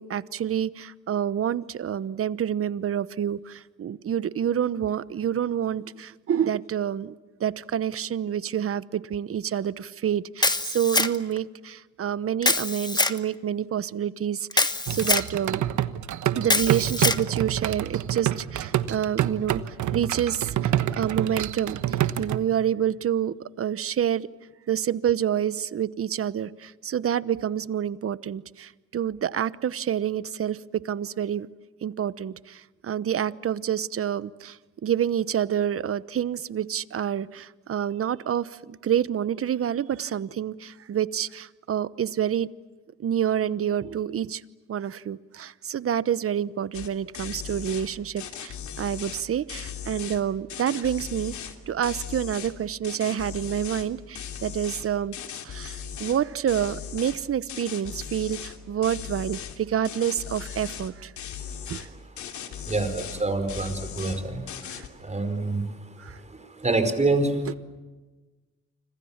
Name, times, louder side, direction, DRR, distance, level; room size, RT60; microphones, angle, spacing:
voice 1, 0.0-15.6 16.3-24.3 24.7-30.6 30.8-31.5 31.8-42.5 43.0-44.4 44.7-51.3 51.7-55.1 55.4-61.1 61.7-61.9 64.6-64.8 66.0-66.2 67.5-67.6, right 9 dB, 50° right, 1.0 m, -28 dB
Camera, 10.4-11.4 12.4-13.2 14.5-15.3 16.4-17.2, left 2 dB, 15° left, 1.4 m, -24 dB
sound 1, 14.9-22.4, right 11 dB, 75° right, 1.3 m, -27 dB
sound 2, 46.7-46.9 47.1-47.9 48.2-50.2 50.5-51.5 51.8-52.5 52.8-53.9 54.1-56.2 56.5-57.2 57.5-58.6 58.8-59.6 59.8-60.9 61.2-61.8 62.2-63.2 63.5-64.2 64.5-64.9, left 8 dB, 70° left, 3.0 m, -38 dB
voice 2, 61.6-62.0 62.3-67.6, right 2 dB, 25° right, 5.0 m, -28 dB
29.5 x 26.0 x 7.3 m
cardioid pair, 90°, 30 cm